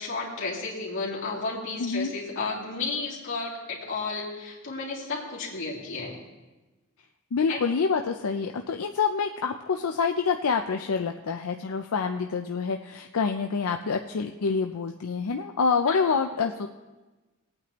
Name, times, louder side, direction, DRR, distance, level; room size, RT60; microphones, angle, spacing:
voice 1, 0.0-6.2 7.5-7.6 15.9-16.2, left 3 dB, 60° left, -5 dB, 2.7 m, -33 dB
voice 2, 1.8-2.1 7.3-16.7, left 5 dB, 85° left, 5 dB, 0.5 m, -27 dB
20.0 x 8.8 x 3.0 m, 1.2 s
head